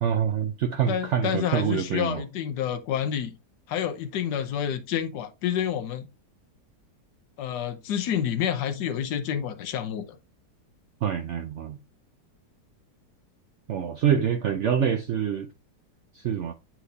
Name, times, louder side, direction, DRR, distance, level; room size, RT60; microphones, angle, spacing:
voice 1, 0.0-2.2 11.0-11.8 13.7-15.5 16.1-16.5, right 8 dB, 85° right, 0.6 m, -26 dB
voice 2, 0.9-3.3 3.7-6.1 7.4-10.0, left 9 dB, 75° left, 1.4 m, -28 dB
8.2 x 4.4 x 2.6 m
omnidirectional pair, 1.9 m